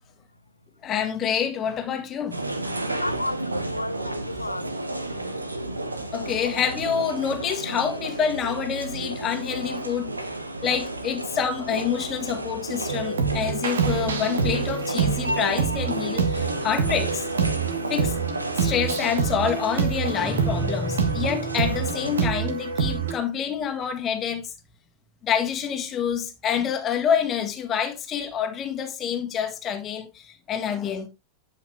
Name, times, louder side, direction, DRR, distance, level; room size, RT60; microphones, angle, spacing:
voice 1, 0.8-2.8 6.1-10.1 10.6-17.3 17.9-18.2 18.6-24.5 25.2-31.1, left 8 dB, 30° left, 1.7 m, -27 dB
sound 1, 2.3-22.2, right 2 dB, 80° right, 1.1 m, -32 dB
voice 2, 3.0-5.0, left 1 dB, 85° left, 0.5 m, -32 dB
sound 2, 12.9-23.1, right 6 dB, 65° right, 1.6 m, -26 dB
sound 3, 20.1-22.2, left 2 dB, 10° left, 0.7 m, -33 dB
10.5 x 5.7 x 3.4 m
figure-of-eight pair, 90°, 0 cm